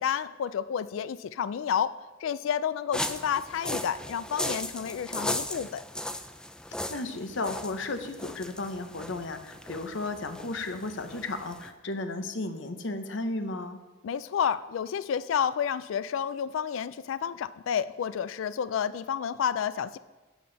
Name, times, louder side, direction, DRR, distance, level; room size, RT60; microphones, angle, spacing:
voice 1, 0.0-5.8 14.0-20.0, left 8 dB, 90° left, 16 dB, 0.3 m, -30 dB
sound 1, 2.9-11.7, left 1 dB, 5° left, 0.4 m, -37 dB
voice 2, 6.9-13.8, left 2 dB, 70° left, 8 dB, 0.9 m, -34 dB
11.0 x 8.6 x 4.0 m, 1.2 s
head